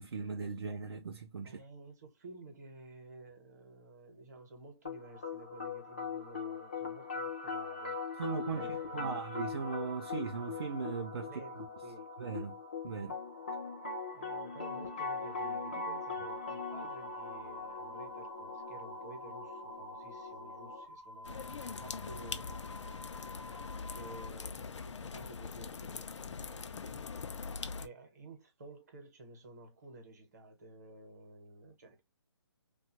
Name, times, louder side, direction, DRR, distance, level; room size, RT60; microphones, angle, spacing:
voice 1, 0.0-1.6 8.2-11.3 12.2-12.6 12.8-13.2, right 5 dB, 55° right, 0.5 m, -38 dB
voice 2, 1.4-8.0 8.4-9.3 11.2-12.1 14.1-21.4 21.8-23.3 23.9-27.3 27.8-32.0, right 2 dB, 35° right, 0.9 m, -53 dB
sound 1, 4.8-20.8, left 4 dB, 20° left, 0.4 m, -41 dB
sound 2, 16.3-24.3, left 1 dB, 85° right, 0.8 m, -51 dB
sound 3, 21.2-27.9, left 5 dB, 90° left, 0.4 m, -42 dB
2.8 x 2.3 x 2.8 m
hypercardioid pair, 170°, 15 cm